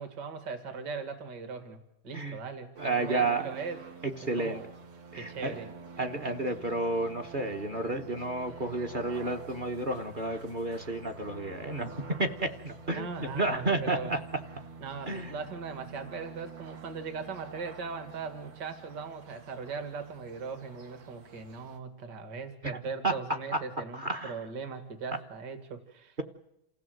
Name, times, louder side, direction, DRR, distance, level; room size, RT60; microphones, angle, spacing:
voice 1, 0.0-1.8 2.0-3.8 4.2-4.7 5.1-5.7 12.9-14.1 14.8-26.2, right 5 dB, 55° right, 9 dB, 2.3 m, -39 dB
voice 2, 2.8-3.4 4.0-4.6 5.1-5.6 6.0-11.9 12.2-14.2 15.1-15.3 22.6-22.7 23.0-23.2 23.5-23.6 23.9-24.4, right 2 dB, 35° right, 7 dB, 0.9 m, -31 dB
sound 1, 2.8-21.8, right 4 dB, 85° right, 2.6 m, -47 dB
28.0 x 16.0 x 7.8 m, 0.86 s
omnidirectional pair, 2.3 m